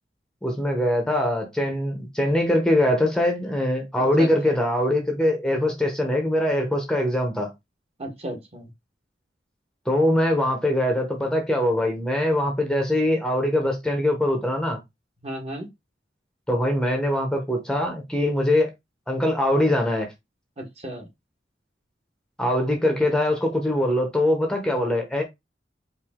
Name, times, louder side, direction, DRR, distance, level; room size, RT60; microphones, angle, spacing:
voice 1, 0.4-7.5 9.9-14.8 16.5-18.7 19.1-20.1 22.4-25.2, left 1 dB, 5° left, 0.9 m, -22 dB
voice 2, 4.2-4.5 8.0-8.7 15.2-15.7 20.6-21.1, right 1 dB, 35° right, 1.4 m, -34 dB
4.9 x 2.7 x 3.6 m
head